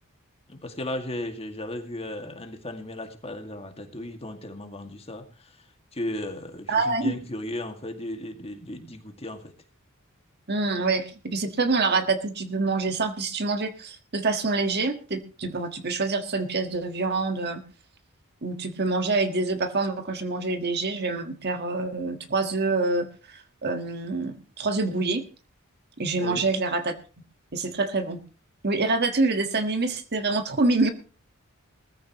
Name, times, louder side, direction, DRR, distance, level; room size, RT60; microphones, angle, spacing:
voice 1, 0.5-5.3 5.9-9.5 26.2-26.4, left 1 dB, 30° left, 5 dB, 2.1 m, -35 dB
voice 2, 6.7-7.1 10.5-17.6 18.4-25.2 26.0-26.9 27.5-28.2 28.6-30.9, right 3 dB, 50° right, 7 dB, 1.6 m, -26 dB
19.5 x 14.5 x 3.0 m, 0.35 s
head